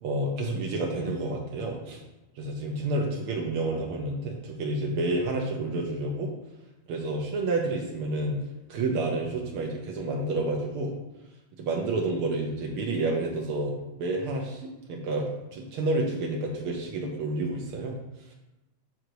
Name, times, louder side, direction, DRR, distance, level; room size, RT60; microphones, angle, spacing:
voice 1, 0.0-2.0 2.4-6.3 6.9-8.4 8.7-10.9 11.6-18.0, right 2 dB, 80° right, -1 dB, 1.2 m, -29 dB
8.1 x 3.8 x 4.7 m, 0.99 s
omnidirectional pair, 3.5 m